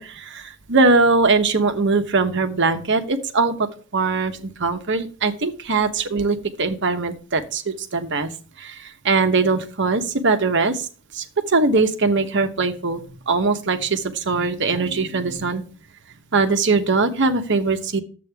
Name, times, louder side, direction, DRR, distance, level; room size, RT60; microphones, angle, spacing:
voice 1, 0.0-8.3 8.6-10.9 11.1-15.6 16.3-18.0, right 3 dB, 60° right, 8 dB, 1.1 m, -21 dB
10.5 x 7.8 x 3.5 m, 0.39 s
head